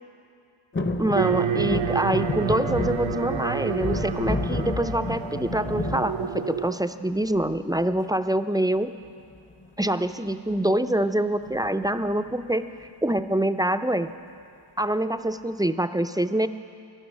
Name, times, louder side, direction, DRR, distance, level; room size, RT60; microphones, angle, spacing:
sound 1, 0.7-6.9 7.3-8.0 9.2-9.7 9.9-10.0 10.3-10.6 11.4-12.3 12.8-12.9, left 3 dB, 25° left, 0.6 m, -31 dB
voice 1, 1.0-8.9 9.8-14.1 14.8-16.5, right 1 dB, 10° right, 9 dB, 0.3 m, -25 dB
sound 2, 1.1-6.7, right 8 dB, 70° right, 0.6 m, -29 dB
14.5 x 11.5 x 6.3 m, 2.3 s
wide cardioid pair, 70°, 48 cm